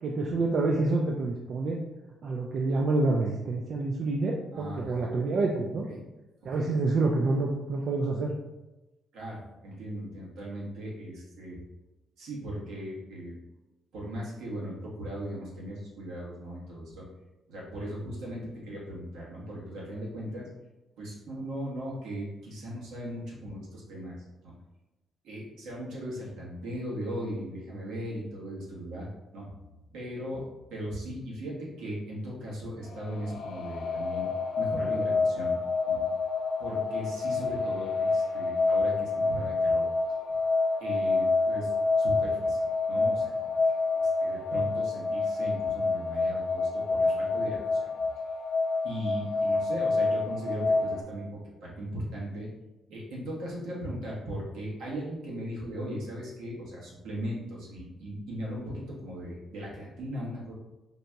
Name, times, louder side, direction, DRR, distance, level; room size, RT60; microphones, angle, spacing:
voice 1, 0.0-1.8 2.2-5.9 6.4-8.3, right 3 dB, 60° right, 0 dB, 0.3 m, -27 dB
voice 2, 4.5-5.1 5.9-6.0 6.5-6.7 9.1-11.6 12.2-13.4 13.9-17.0 17.5-20.5 21.0-24.2 24.4-24.5 25.2-29.1 29.3-29.5 29.9-35.5 35.9-36.0 36.6-39.9 40.8-42.6 42.9-47.9 48.8-52.5 52.9-60.5, equal, 85° right, -5 dB, 1.1 m, -38 dB
sound 1, 32.9-51.0, left 3 dB, 70° left, 0.4 m, -28 dB
4.0 x 2.7 x 2.2 m, 1.0 s
cardioid pair, 90°, 0 cm